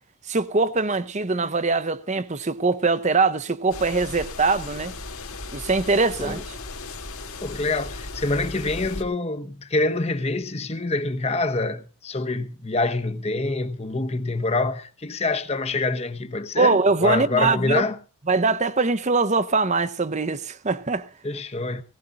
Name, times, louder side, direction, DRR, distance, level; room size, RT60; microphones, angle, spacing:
voice 1, 0.3-4.9 5.5-6.4 16.6-17.8 18.3-21.1, right 3 dB, 30° right, 0.7 m, -22 dB
sound 1, 3.7-9.0, left 3 dB, 75° left, 2.8 m, -36 dB
voice 2, 7.4-18.0 21.2-21.8, left 3 dB, 30° left, 0.9 m, -26 dB
18.5 x 17.5 x 2.6 m
head